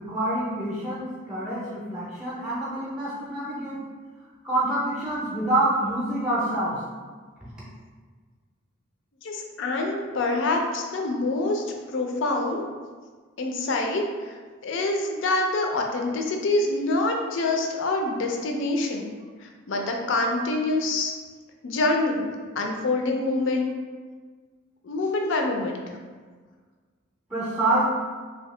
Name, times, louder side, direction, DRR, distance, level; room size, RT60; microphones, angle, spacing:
voice 1, 0.0-3.8 4.4-6.8 27.3-27.8, right 1 dB, 5° right, -7 dB, 0.5 m, -26 dB
voice 2, 9.2-11.7 11.9-12.7 13.4-14.0 14.6-19.1 19.4-21.1 21.6-22.3 22.6-23.7 24.8-25.8, left 2 dB, 65° left, 2 dB, 0.4 m, -26 dB
2.8 x 2.7 x 3.2 m, 1.5 s
head